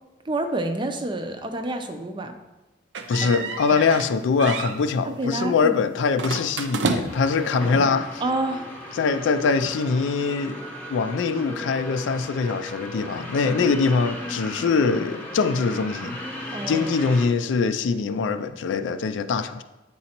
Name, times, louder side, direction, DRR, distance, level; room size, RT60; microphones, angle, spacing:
voice 1, 0.2-2.4 5.0-5.8 8.2-8.7 16.5-16.9, right 2 dB, 25° right, 0.5 m, -28 dB
sound 1, 2.9-4.1 4.4-4.8 6.2-7.4, right 4 dB, 80° right, 0.5 m, -29 dB
voice 2, 3.1-8.2 9.0-10.6 10.9-16.2 16.7-19.6, left 5 dB, 90° left, 0.4 m, -23 dB
sound 2, 7.1-17.3, left 1 dB, 10° left, 0.9 m, -36 dB
8.6 x 4.0 x 2.9 m
head